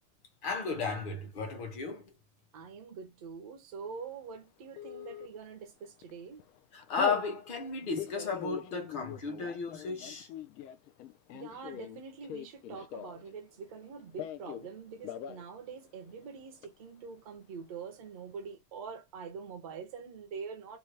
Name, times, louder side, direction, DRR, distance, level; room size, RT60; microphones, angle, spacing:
voice 1, 0.4-2.1 6.7-10.3, left 4 dB, 40° left, 1.1 m, -34 dB
voice 2, 2.5-6.4 11.3-20.8, right 5 dB, 25° right, 0.3 m, -45 dB
Telephone, 4.8-5.3 5.8-6.1 6.4-7.3 7.8-13.3 13.6-14.7 15.0-15.4 15.7-15.8 16.1-16.7, left 10 dB, 85° left, 0.6 m, -42 dB
2.8 x 2.3 x 3.2 m
supercardioid pair, 180°, 47 cm